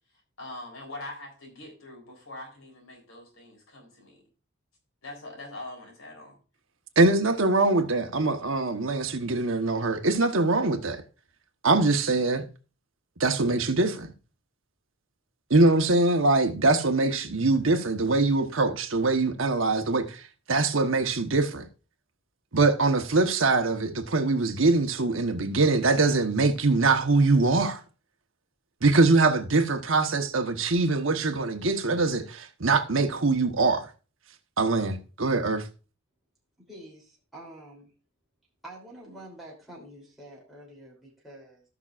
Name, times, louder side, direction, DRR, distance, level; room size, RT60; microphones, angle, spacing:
voice 1, 0.4-4.2 5.0-6.4, left 2 dB, 75° left, 3.9 m, -43 dB
voice 2, 7.0-11.0 11.6-12.4 13.2-14.1 15.5-20.2 20.5-21.7 22.5-27.8 28.8-33.9 34.6-35.7, right 3 dB, 65° right, 1.2 m, -23 dB
voice 3, 36.7-37.9 38.6-41.6, right 1 dB, ahead, 3.2 m, -47 dB
18.0 x 6.0 x 2.5 m
head